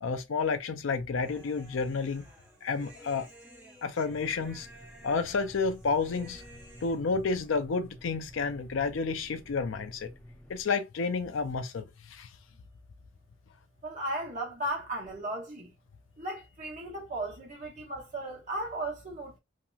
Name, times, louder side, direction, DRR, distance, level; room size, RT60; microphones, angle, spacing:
voice 1, 0.0-2.3 2.6-3.3 3.8-4.7 5.0-6.4 6.8-10.1 10.5-12.3, left 4 dB, 85° left, 0.5 m, -30 dB
Human voice, 1.2-7.6, right 1 dB, 10° right, 1.1 m, -54 dB
sound 1, 4.1-10.6, equal, 5° left, 0.7 m, -51 dB
voice 2, 13.8-15.7 16.2-19.4, right 1 dB, 40° right, 1.3 m, -36 dB
2.9 x 2.8 x 2.3 m
head